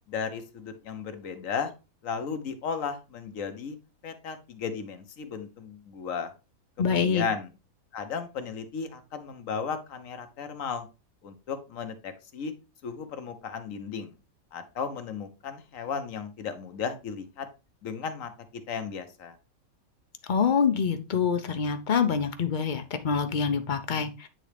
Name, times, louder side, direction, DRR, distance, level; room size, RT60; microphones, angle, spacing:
voice 1, 0.1-1.7 2.0-3.8 4.0-6.3 6.8-7.5 7.9-10.9 11.2-12.5 12.8-14.1 14.5-17.5 17.8-18.3 18.7-19.4, left 6 dB, 65° left, 8 dB, 1.2 m, -35 dB
voice 2, 6.8-7.2 20.3-24.3, left 6 dB, 45° left, 8 dB, 0.6 m, -26 dB
9.0 x 3.8 x 3.3 m, 0.29 s
omnidirectional pair, 1.5 m